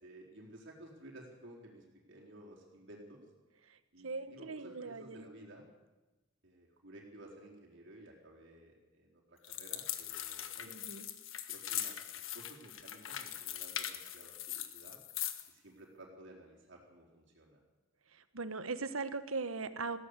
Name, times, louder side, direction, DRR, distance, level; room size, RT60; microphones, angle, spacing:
voice 1, 0.0-3.2 3.9-5.7 6.4-10.8 11.5-15.0 15.5-17.7, right 1 dB, 60° right, -1 dB, 4.1 m, -55 dB
voice 2, 4.0-5.3 10.7-11.1 18.1-20.0, right 4 dB, 85° right, 11 dB, 1.4 m, -40 dB
sound 1, 9.4-15.5, left 11 dB, 75° left, 1.5 m, -41 dB
20.0 x 16.0 x 8.2 m, 1.1 s
head